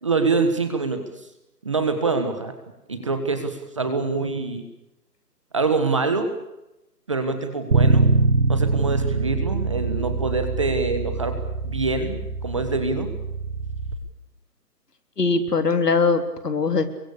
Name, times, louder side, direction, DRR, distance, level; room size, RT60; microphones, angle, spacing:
voice 1, 0.0-1.0 1.6-2.5 2.9-4.6 5.5-6.3 7.1-8.1 8.5-11.4 11.6-13.1, right 4 dB, 20° right, 7 dB, 1.5 m, -25 dB
Bass guitar, 7.7-13.9, right 3 dB, 75° right, 6.4 m, -23 dB
voice 2, 15.2-16.8, left 4 dB, 75° left, 8 dB, 3.7 m, -21 dB
28.5 x 23.5 x 6.7 m, 0.92 s
hypercardioid pair, 180°, 48 cm